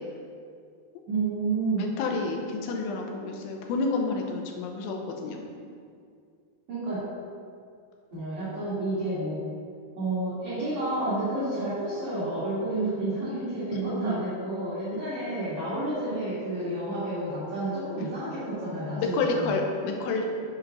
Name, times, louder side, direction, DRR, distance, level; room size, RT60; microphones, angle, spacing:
voice 1, 1.1-1.9 6.7-7.0 8.1-9.4 10.0-19.6, right 2 dB, 45° right, -12 dB, 2.2 m, -30 dB
voice 2, 2.0-5.4 15.1-15.2 19.0-20.3, left 3 dB, 80° left, 2 dB, 2.5 m, -29 dB
6.5 x 5.0 x 5.3 m, 2.3 s
omnidirectional pair, 4.4 m